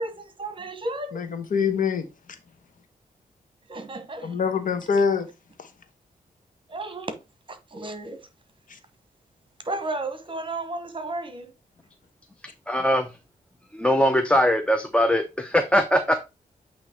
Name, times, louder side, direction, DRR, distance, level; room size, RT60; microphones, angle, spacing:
voice 1, 0.0-1.2 3.7-4.4 6.7-7.2 7.5-8.3 9.6-11.5, right 2 dB, 35° right, 1.2 m, -33 dB
voice 2, 1.1-2.4 4.2-5.3 5.6-5.7 8.7-8.8, left 6 dB, 65° left, 1.1 m, -25 dB
voice 3, 12.7-13.2 13.7-16.1, equal, 5° left, 0.6 m, -21 dB
8.4 x 2.9 x 4.4 m
cardioid pair, 95°, 15 cm